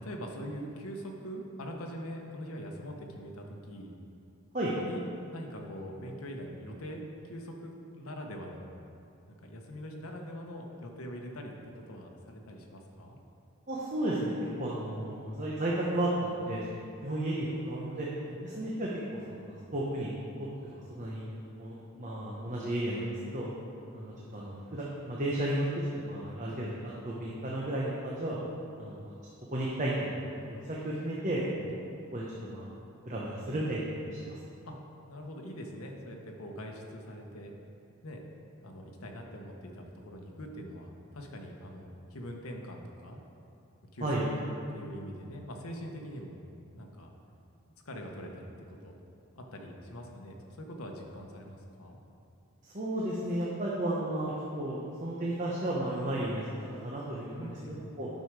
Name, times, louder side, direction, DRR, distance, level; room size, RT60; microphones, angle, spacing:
voice 1, 0.0-3.9 4.8-5.0 5.3-8.7 9.3-13.2 14.9-15.0 18.3-18.4 34.7-34.8 35.1-37.5 38.0-38.2 38.6-43.2 43.9-44.4 44.7-46.4 46.7-47.1 47.8-48.9 49.3-52.0 57.4-57.8, equal, 80° left, 1 dB, 1.1 m, -43 dB
voice 2, 13.7-14.3 14.6-18.1 18.4-20.1 20.4-21.2 21.6-23.5 23.9-25.7 26.0-28.4 28.8-29.1 29.5-31.7 32.1-32.7 33.1-34.4 44.0-44.2 52.7-56.4 56.8-58.1, right 1 dB, 35° right, -5 dB, 1.0 m, -33 dB
9.4 x 6.4 x 4.8 m, 2.6 s
head